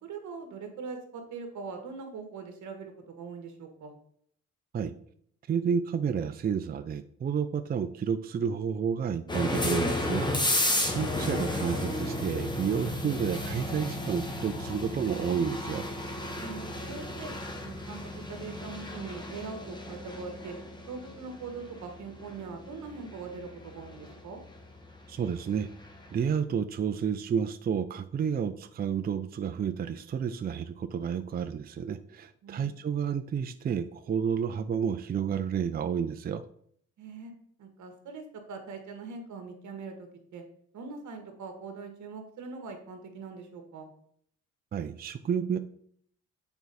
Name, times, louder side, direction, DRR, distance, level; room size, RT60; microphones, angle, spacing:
voice 1, 0.0-3.9 10.7-11.0 16.4-17.3 17.6-20.6 20.9-24.4 32.4-32.8 37.0-37.3 37.6-40.4 40.7-43.9, right 4 dB, 70° right, 5 dB, 1.6 m, -42 dB
voice 2, 5.5-15.9 25.1-25.7 26.1-36.4 44.7-45.6, right 7 dB, 30° right, 10 dB, 0.4 m, -31 dB
sound 1, 9.3-26.1, left 1 dB, 15° left, 1.4 m, -33 dB
7.1 x 4.6 x 4.1 m, 0.65 s
cardioid pair, 90°, 30 cm